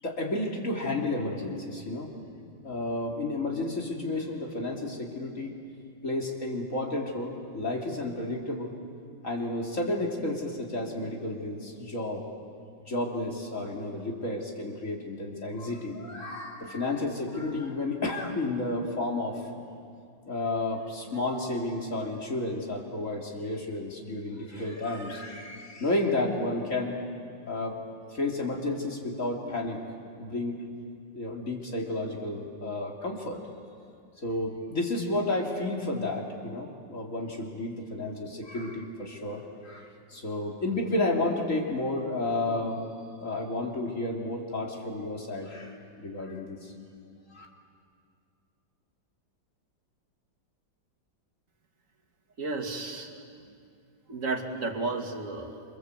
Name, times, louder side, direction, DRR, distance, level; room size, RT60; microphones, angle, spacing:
voice 1, 0.0-2.1 2.6-5.5 6.0-8.7 9.2-12.2 12.9-19.5 20.3-27.0 27.4-27.8 28.1-29.8 30.2-30.6 31.1-33.4 34.2-42.8 43.2-46.7 47.3-47.5, left 2 dB, 40° left, 0 dB, 3.4 m, -31 dB
voice 2, 52.4-53.2 54.1-55.6, right 3 dB, 40° right, 2 dB, 2.5 m, -33 dB
27.5 x 26.0 x 8.1 m, 2.3 s
omnidirectional pair, 2.0 m